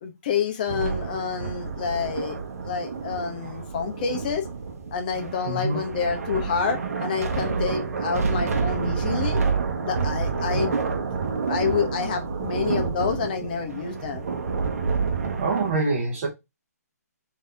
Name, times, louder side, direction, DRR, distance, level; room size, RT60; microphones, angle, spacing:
voice 1, 0.0-2.4 2.6-4.4 4.9-9.5 9.8-11.0 11.5-14.3, left 6 dB, 30° left, 0.7 m, -28 dB
sound 1, 0.7-15.7, right 5 dB, 60° right, 0.9 m, -28 dB
voice 2, 5.5-5.8 10.5-10.6 15.4-16.3, right 3 dB, 35° right, 0.8 m, -25 dB
3.9 x 2.8 x 3.2 m
hypercardioid pair, 165°, 9 cm